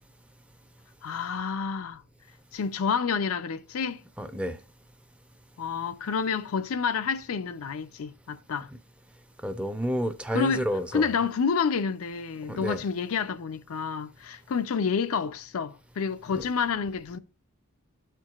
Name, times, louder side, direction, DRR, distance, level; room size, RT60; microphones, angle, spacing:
voice 1, 1.0-2.0 2.5-4.0 5.6-8.7 10.3-10.7 10.9-17.2, left 6 dB, 75° left, 0.5 m, -29 dB
voice 2, 4.2-4.6 9.4-11.1 12.5-12.8, equal, 5° right, 0.5 m, -29 dB
12.5 x 4.5 x 2.4 m
head